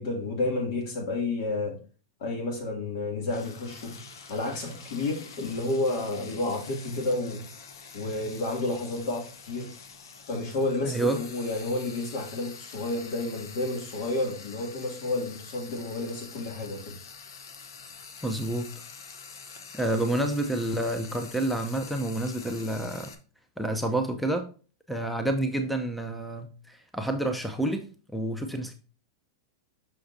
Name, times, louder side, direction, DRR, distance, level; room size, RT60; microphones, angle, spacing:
voice 1, 0.0-1.8 2.2-4.0 4.3-7.4 7.9-9.7 10.3-16.9, left 2 dB, 60° left, 2.3 m, -30 dB
Frying (food), 3.3-23.1, left 5 dB, 80° left, 0.9 m, -46 dB
voice 2, 10.8-11.2 18.2-18.7 19.7-23.1 23.6-24.5 24.9-27.9 28.1-28.7, right 1 dB, ahead, 0.6 m, -29 dB
6.4 x 6.0 x 2.6 m
hypercardioid pair, 130°, 2 cm